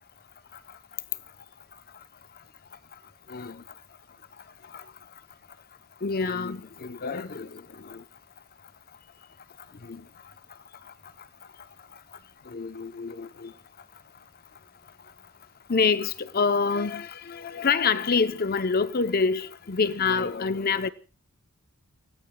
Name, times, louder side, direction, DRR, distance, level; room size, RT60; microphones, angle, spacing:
voice 1, 6.0-7.5 7.9-8.0 9.9-10.0 12.5-13.5 15.7-20.9, left 5 dB, 45° left, 0.7 m, -26 dB
30.0 x 17.0 x 2.3 m
head